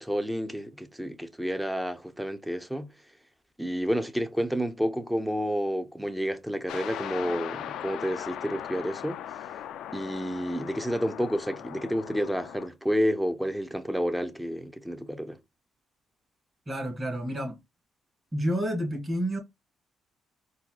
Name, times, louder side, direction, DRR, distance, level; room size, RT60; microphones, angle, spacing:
voice 1, 0.0-2.9 3.6-9.5 9.9-15.4, equal, 5° right, 0.6 m, -30 dB
sound 1, 6.7-12.7, left 11 dB, 80° left, 0.3 m, -39 dB
voice 2, 16.7-17.6 18.3-19.4, equal, 25° right, 2.0 m, -29 dB
4.1 x 2.2 x 2.3 m
cardioid pair, 90°, 0 cm